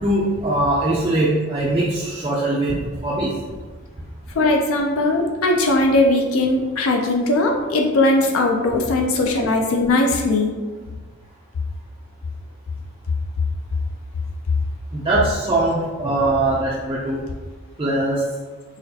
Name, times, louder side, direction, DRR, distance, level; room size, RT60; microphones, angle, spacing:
voice 1, 0.0-2.8 3.0-3.3 14.9-17.2 17.8-18.2, right 2 dB, 20° right, -7 dB, 0.3 m, -21 dB
voice 2, 4.4-10.5, left 2 dB, 70° left, 2 dB, 0.4 m, -19 dB
4.1 x 2.4 x 2.7 m, 1.4 s
head